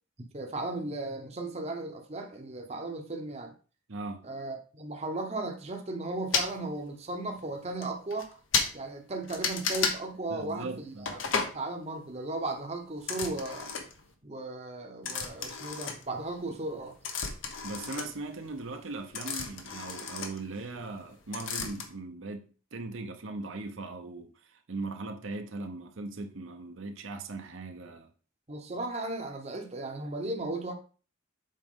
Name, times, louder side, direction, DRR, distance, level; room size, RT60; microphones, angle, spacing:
voice 1, 0.3-3.5 4.2-8.4 8.7-11.2 11.5-13.7 14.2-17.0 28.5-30.7, right 2 dB, 30° right, 0.8 m, -36 dB
voice 2, 3.9-4.3 10.3-11.1 17.6-28.1, right 3 dB, 70° right, 0.8 m, -39 dB
sound 1, 6.3-6.5 7.4-7.5 7.8-7.9 8.1-8.3 8.5-8.7 9.3-10.0 11.1-11.6 13.0-14.1 15.0-16.4 16.7-21.0 21.3-21.9, left 5 dB, 65° left, 1.0 m, -32 dB
7.5 x 4.7 x 3.7 m
head